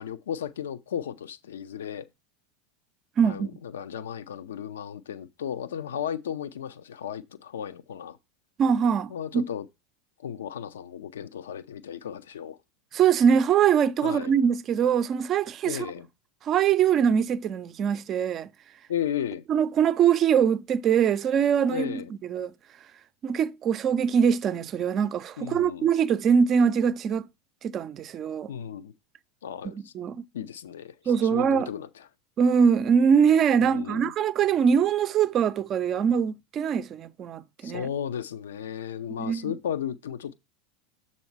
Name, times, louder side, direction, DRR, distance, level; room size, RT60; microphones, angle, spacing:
voice 1, 0.0-2.1 3.2-8.2 9.1-9.7 10.2-12.6 14.0-14.3 15.6-16.1 18.9-19.4 21.7-22.1 25.4-25.9 28.5-28.9 29.4-29.9 30.3-32.1 33.6-34.1 37.6-40.3, left 9 dB, 75° left, 0.5 m, -34 dB
voice 2, 3.2-3.5 8.6-9.4 12.9-15.9 16.4-18.5 19.5-22.0 22.3-22.5 23.2-27.3 27.6-28.5 29.6-30.2 31.1-31.7 32.4-37.9 39.2-39.5, right 7 dB, 40° right, 0.5 m, -23 dB
7.0 x 4.2 x 4.5 m
hypercardioid pair, 85°, 0 cm